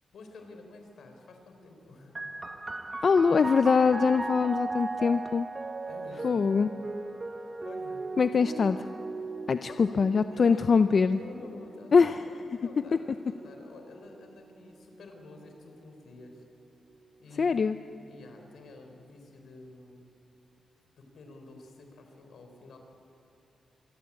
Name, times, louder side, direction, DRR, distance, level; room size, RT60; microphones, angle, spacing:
voice 1, 0.1-2.2 5.9-6.5 7.6-8.0 9.7-16.4 17.2-20.0 21.0-22.8, left 2 dB, 80° left, 4 dB, 4.6 m, -49 dB
sound 1, 2.1-15.4 16.2-17.0, right 3 dB, 25° right, 1.5 m, -39 dB
voice 2, 3.0-5.5 6.2-6.7 8.2-8.9 9.5-11.2 11.9-12.2 17.4-17.8, left 5 dB, 50° left, 10 dB, 0.6 m, -23 dB
25.5 x 22.0 x 8.7 m, 2.8 s
wide cardioid pair, 110°, 0 cm